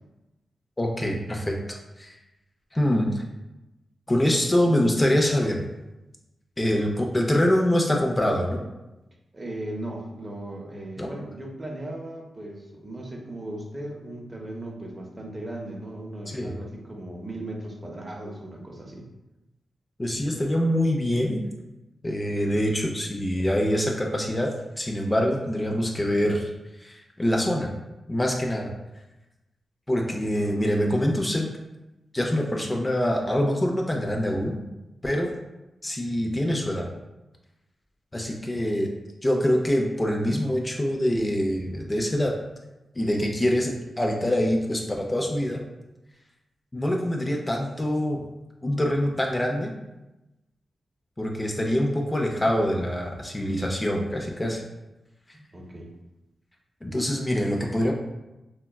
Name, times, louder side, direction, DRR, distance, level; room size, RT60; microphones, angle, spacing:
voice 1, 0.8-2.2 2.7-3.2 4.1-5.6 6.6-8.7 11.0-11.1 16.3-16.5 20.0-21.5 22.0-24.5 24.8-26.5 26.8-27.7 28.1-28.7 29.9-31.5 32.1-34.6 35.0-35.3 35.8-36.9 38.1-38.9 39.2-42.3 43.0-45.6 46.7-48.2 48.6-49.7 51.2-54.6 56.8-57.9, equal, 25° left, 0 dB, 0.5 m, -25 dB
voice 2, 9.3-19.1 38.5-38.7 55.5-55.9, right 1 dB, 30° right, 0 dB, 0.6 m, -37 dB
3.5 x 2.3 x 2.3 m, 0.99 s
cardioid pair, 50°, 0 cm